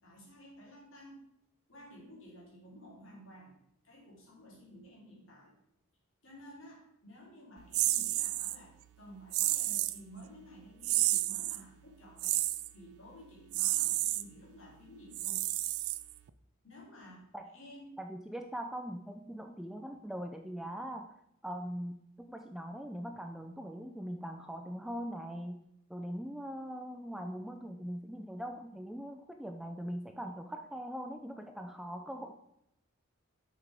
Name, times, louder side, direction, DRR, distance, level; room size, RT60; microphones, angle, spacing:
voice 1, 0.0-1.3 1.7-3.5 3.8-5.6 6.2-12.4 12.7-15.5 16.6-17.2 17.5-18.0, equal, 60° left, -3 dB, 2.8 m, -53 dB
sound 1, 7.7-8.6 9.3-10.0 10.8-11.6 12.2-12.7 13.5-14.2 15.1-16.3, right 16 dB, 85° right, 0.4 m, -31 dB
voice 2, 18.0-25.6 25.9-32.3, equal, ahead, 5 dB, 0.3 m, -41 dB
6.3 x 6.0 x 4.8 m, 0.78 s
head